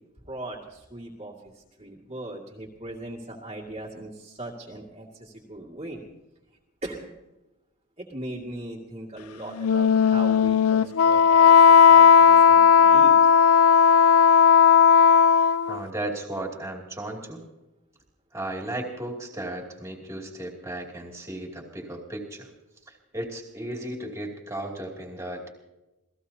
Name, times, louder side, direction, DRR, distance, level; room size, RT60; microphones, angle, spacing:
voice 1, 0.2-6.0 6.8-7.1 8.0-13.3, right 1 dB, 30° right, -4 dB, 2.2 m, -39 dB
Wind instrument woodwind instrument, 9.6-15.8, left 7 dB, 70° left, 0.4 m, -15 dB
voice 2, 15.7-17.4 18.3-22.5 22.9-25.5, right 1 dB, 15° right, 0 dB, 2.6 m, -35 dB
27.5 x 18.0 x 2.8 m, 1.0 s
head